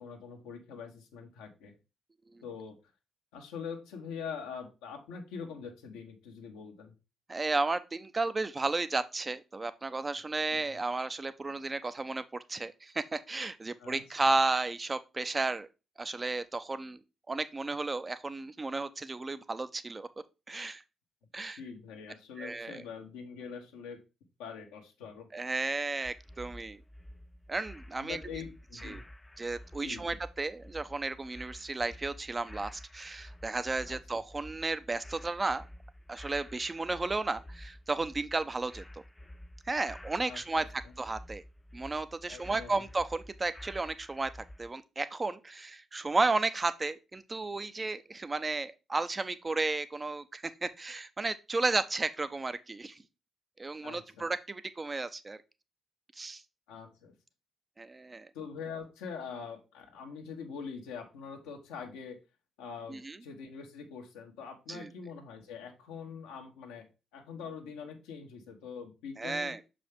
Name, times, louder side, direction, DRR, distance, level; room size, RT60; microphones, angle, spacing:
voice 1, 0.0-1.8 2.4-2.8 3.3-6.9 10.5-10.6 13.8-14.3 21.6-24.0 24.4-25.3 28.0-29.0 29.8-30.2 33.9-34.2 40.3-40.9 42.3-42.7 53.8-54.3 56.7-57.1 58.3-62.2 62.6-69.5, left 6 dB, 80° left, 1.3 m, -44 dB
voice 2, 7.3-12.2 12.5-15.7 16.0-17.0 17.3-20.1 20.5-20.8 21.3-21.6 22.4-22.8 25.3-26.8 27.5-28.2 28.8-29.0 29.4-35.7 36.1-39.0 39.7-40.7 41.0-41.4 41.7-44.3 44.6-53.0 53.6-55.4 56.2-56.4 57.8-58.3 62.9-63.2 64.7-64.9 69.2-69.6, right 3 dB, 30° right, 0.8 m, -33 dB
sound 1, 26.0-44.7, left 1 dB, 15° left, 0.4 m, -50 dB
6.4 x 5.1 x 3.6 m
hypercardioid pair, 40°, 0 cm